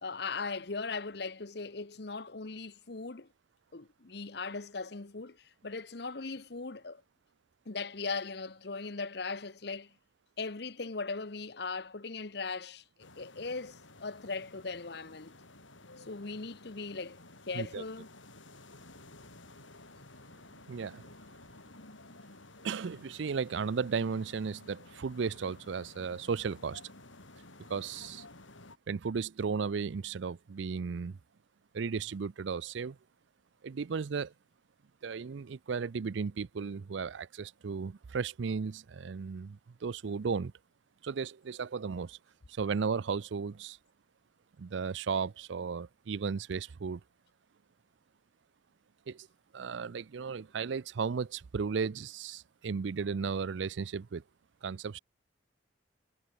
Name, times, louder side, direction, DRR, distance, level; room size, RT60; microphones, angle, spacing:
voice 1, 0.0-3.3 3.7-7.0 7.7-9.9 10.4-15.4 16.0-17.2 17.5-18.1, left 4 dB, 55° left, 1.0 m, -39 dB
sound 1, 13.0-28.8, left 2 dB, 90° left, 7.5 m, -54 dB
voice 2, 20.7-21.0 22.6-26.8 27.7-28.2 28.9-31.2 31.7-33.0 33.6-34.3 35.0-40.5 41.0-42.2 42.5-43.8 44.6-47.0 49.1-49.3 49.5-54.2 54.6-55.0, right 5 dB, 70° right, 0.5 m, -35 dB
head